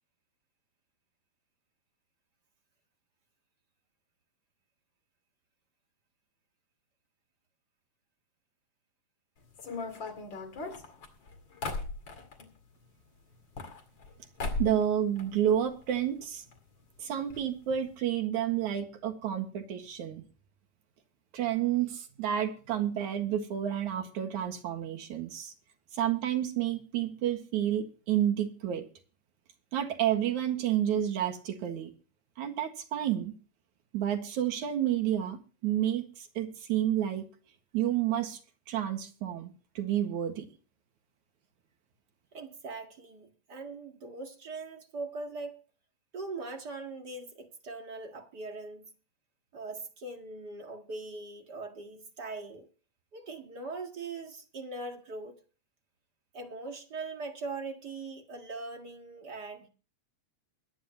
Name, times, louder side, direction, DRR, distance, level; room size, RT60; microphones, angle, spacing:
sound 1, 9.6-12.5 13.3-14.1 14.4-14.9 15.2-16.0 16.2-16.3 16.5-16.6 17.3-17.4 17.7-17.9, left 3 dB, 40° left, 2.7 m, -37 dB
voice 1, 14.6-16.4 17.0-20.2 21.3-25.5 25.9-28.8 29.7-31.9 32.4-33.3 33.9-37.3 37.7-38.4 38.7-40.5, right 10 dB, 85° right, 3.2 m, -30 dB
voice 2, 42.3-45.6 46.1-48.9 49.5-52.7 53.1-55.4 56.3-59.7, right 3 dB, 40° right, 2.1 m, -41 dB
22.5 x 10.0 x 3.0 m
omnidirectional pair, 3.3 m